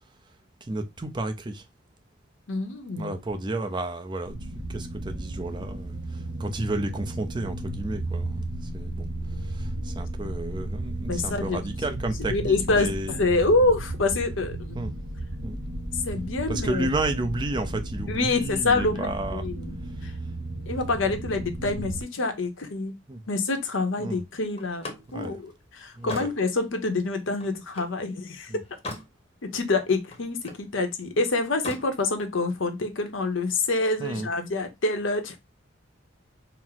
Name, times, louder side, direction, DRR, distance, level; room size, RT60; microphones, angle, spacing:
voice 1, 0.7-1.6 3.0-4.3 4.7-8.4 8.7-9.1 9.4-13.1 14.7-14.9 15.4-15.6 16.5-19.4 23.1-23.2 24.0-24.2 25.1-25.4 26.0-26.3 28.5-28.6 34.0-34.3, right 2 dB, 20° right, 0.5 m, -32 dB
voice 2, 2.5-3.1 11.1-11.6 12.2-14.8 16.0-16.9 18.1-19.8 20.0-20.1 20.7-22.9 23.3-24.9 25.1-28.5 29.4-35.4, left 3 dB, 70° left, 0.8 m, -26 dB
sound 1, 4.3-22.0, right 1 dB, 85° right, 1.0 m, -34 dB
Slam, 24.6-28.0 28.5-29.1 29.5-30.7 31.5-31.9, left 2 dB, 30° left, 0.8 m, -40 dB
4.4 x 2.0 x 3.8 m
head